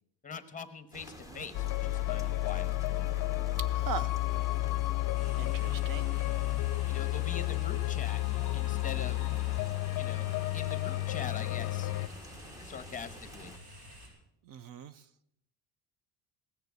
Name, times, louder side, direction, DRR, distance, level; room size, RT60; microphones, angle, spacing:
voice 1, 0.2-3.1 6.9-8.2 8.5-9.2 9.9-11.9 12.6-13.5, left 6 dB, 20° left, 11 dB, 1.1 m, -43 dB
sound 1, 0.9-13.6, left 1 dB, 10° right, 0.9 m, -50 dB
sound 2, 1.5-12.1, left 18 dB, 50° left, 0.6 m, -31 dB
voice 2, 3.6-4.1 5.4-6.1 14.5-15.0, right 7 dB, 50° right, 16 dB, 0.6 m, -40 dB
sound 3, 5.1-14.1, equal, 75° right, 7.9 m, -51 dB
18.5 x 6.8 x 9.3 m, 0.78 s
cardioid pair, 145°, 43 cm